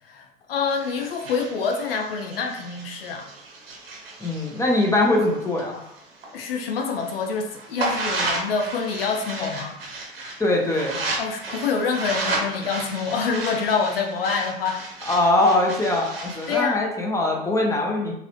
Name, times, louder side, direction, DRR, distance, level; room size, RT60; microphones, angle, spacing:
voice 1, 0.0-3.3 6.3-9.8 11.2-14.8 16.5-16.8, left 5 dB, 80° left, 2 dB, 0.6 m, -26 dB
sound 1, 0.7-6.3 6.7-16.6, right 2 dB, 85° right, 0.8 m, -33 dB
voice 2, 4.2-5.9 10.4-11.0 15.1-18.1, left 2 dB, 10° left, -1 dB, 1.0 m, -22 dB
3.0 x 2.7 x 3.0 m, 0.77 s
figure-of-eight pair, 75°, 29 cm